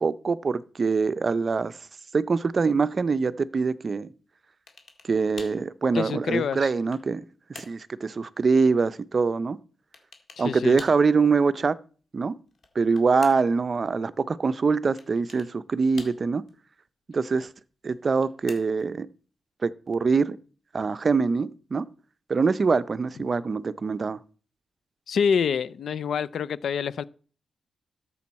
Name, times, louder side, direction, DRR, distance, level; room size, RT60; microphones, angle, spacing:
voice 1, 0.0-1.8 2.1-4.1 5.0-7.2 7.5-9.6 10.4-11.8 12.1-12.3 12.8-16.4 17.1-17.5 17.8-19.1 19.6-20.4 20.7-21.9 22.3-24.2, right 4 dB, 40° right, 0.5 m, -24 dB
sound 1, 4.7-5.1 5.4-5.7 6.3-7.1 7.5-7.8 9.9-10.5 10.8-11.1 12.5-13.6 15.0-15.5 16.0-16.5 17.9-18.9, left 4 dB, 55° left, 1.9 m, -46 dB
voice 2, 5.9-6.7 10.4-10.8 25.1-27.0, left 6 dB, 75° left, 0.5 m, -26 dB
13.0 x 6.9 x 4.2 m
wide cardioid pair, 125°, 0 cm